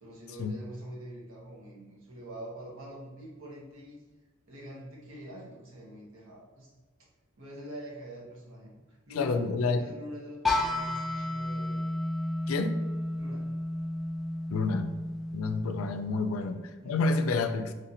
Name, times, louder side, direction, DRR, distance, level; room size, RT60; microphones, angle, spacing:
voice 1, 0.0-4.0 4.5-6.7 7.4-11.9 13.2-13.5 16.8-17.5, right 1 dB, 75° right, -3 dB, 1.1 m, -45 dB
voice 2, 9.2-9.8 12.5-12.8 14.5-14.9 15.3-17.7, left 3 dB, 85° left, 8 dB, 0.4 m, -29 dB
sound 1, 10.4-16.2, left 1 dB, ahead, 0.3 m, -32 dB
3.3 x 2.7 x 4.1 m, 1.3 s
head